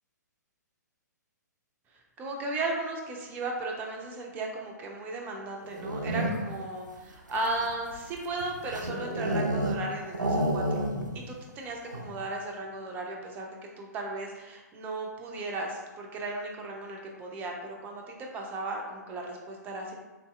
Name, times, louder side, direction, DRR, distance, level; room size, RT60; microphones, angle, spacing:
voice 1, 2.2-10.9 11.3-20.0, right 2 dB, 15° right, 0 dB, 0.5 m, -36 dB
sound 1, 5.6-6.6 7.3-9.9 10.1-11.2 11.5-11.6 11.9-12.3, right 1 dB, 85° right, 0.4 m, -30 dB
3.7 x 2.6 x 2.3 m, 1.2 s
figure-of-eight pair, 120°, 10 cm